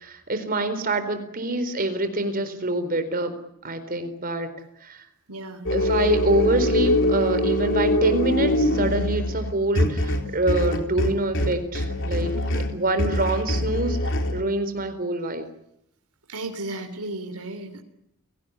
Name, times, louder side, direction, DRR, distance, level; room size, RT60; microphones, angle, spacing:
voice 1, 0.0-3.3 3.6-4.5 4.8-5.0 5.7-12.3 12.7-15.4, right 2 dB, 40° right, 10 dB, 4.2 m, -25 dB
voice 2, 5.3-5.7 12.2-12.7 16.3-17.8, right 2 dB, 85° right, 7 dB, 3.3 m, -35 dB
sound 1, 5.7-14.4, left 1 dB, 60° left, 3.7 m, -24 dB
29.5 x 18.5 x 9.7 m, 0.80 s
head